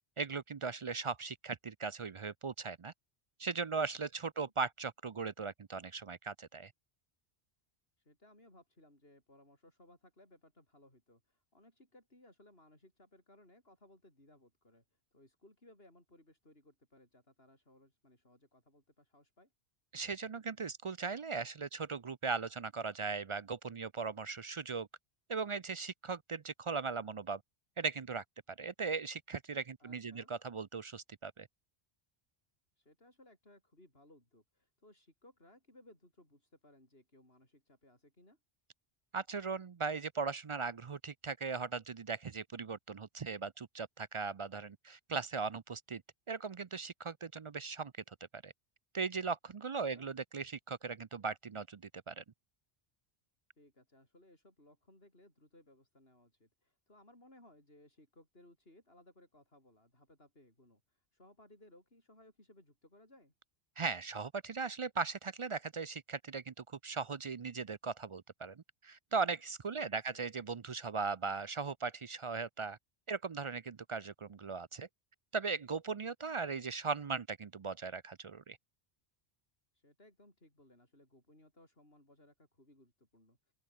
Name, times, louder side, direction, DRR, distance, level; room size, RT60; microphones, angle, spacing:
voice 1, 0.2-2.9 3.4-6.7 19.9-24.9 25.3-27.4 27.8-28.2 28.6-31.5 39.1-46.0 46.3-48.5 48.9-52.2 63.8-72.8 73.1-74.9 75.3-78.6, right 4 dB, 40° right, 0.4 m, -38 dB
voice 2, 8.0-19.5 29.8-30.3 32.8-38.4 49.8-50.1 53.6-63.3 69.7-70.2 79.7-83.5, left 1 dB, 70° left, 8.2 m, -63 dB
open air
omnidirectional pair, 1.1 m